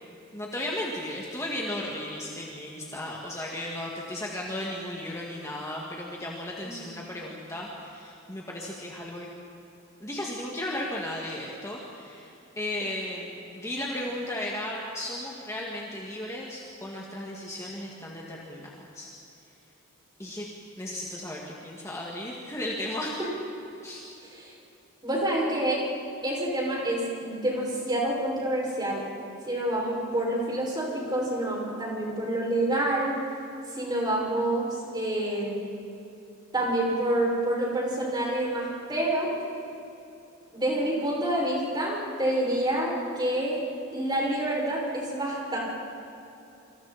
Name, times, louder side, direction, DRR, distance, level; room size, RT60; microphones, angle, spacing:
voice 1, 0.3-9.3 10.0-19.1 20.2-20.5 20.8-23.2 23.8-24.1, left 1 dB, 15° left, -3 dB, 2.3 m, -35 dB
voice 2, 6.6-7.0 24.2-24.6 25.0-25.8 26.2-29.0 29.5-33.2 33.7-35.7 36.5-39.3 40.5-43.6 43.9-45.6, right 1 dB, 20° right, -3 dB, 6.4 m, -28 dB
28.0 x 26.5 x 4.4 m, 2.8 s
head